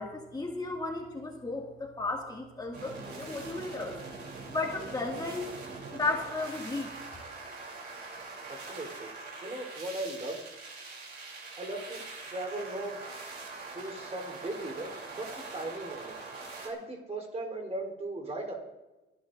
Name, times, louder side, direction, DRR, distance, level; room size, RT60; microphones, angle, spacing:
voice 1, 0.0-4.0 4.5-5.6 5.9-6.9, left 3 dB, 20° left, -1 dB, 2.1 m, -34 dB
sound 1, 2.7-16.7, right 3 dB, 55° right, 3.3 m, -43 dB
voice 2, 8.5-9.1 9.4-10.4 11.6-12.0 12.3-13.0 13.7-16.2 16.6-18.5, right 2 dB, 35° right, 3 dB, 3.7 m, -38 dB
29.5 x 11.5 x 2.6 m, 1.1 s
cardioid pair, 90°, 20 cm